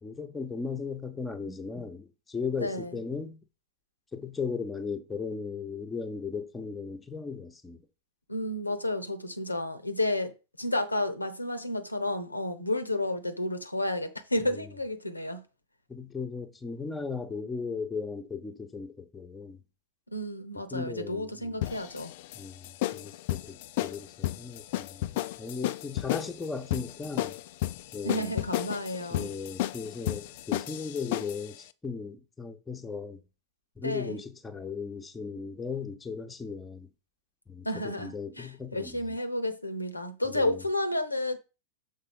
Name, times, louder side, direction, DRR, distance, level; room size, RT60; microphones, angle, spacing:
voice 1, 0.0-3.4 4.1-7.8 14.5-14.7 15.9-19.6 20.6-21.5 22.3-27.4 27.9-28.3 29.1-33.2 33.8-36.9 37.5-39.2 40.3-40.6, left 5 dB, 10° left, 0.9 m, -37 dB
voice 2, 2.6-2.9 8.3-15.4 20.1-22.1 28.0-29.3 33.8-34.2 37.6-41.4, left 1 dB, 85° left, 0.8 m, -31 dB
sound 1, 21.6-31.5, left 15 dB, 50° left, 0.4 m, -33 dB
6.5 x 4.0 x 5.5 m
figure-of-eight pair, 90°, 0 cm